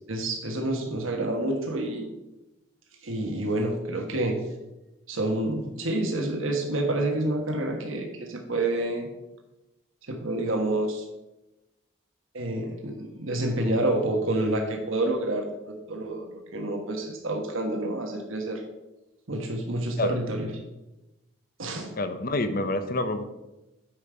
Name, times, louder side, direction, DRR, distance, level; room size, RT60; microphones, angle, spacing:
voice 1, 0.1-2.1 3.0-4.4 5.1-9.1 10.0-11.1 12.3-18.6 19.3-20.5 21.6-21.9, right 1 dB, 75° right, 2 dB, 1.3 m, -28 dB
voice 2, 22.0-23.2, left 2 dB, 45° left, 10 dB, 0.7 m, -27 dB
9.0 x 5.3 x 5.0 m, 0.99 s
head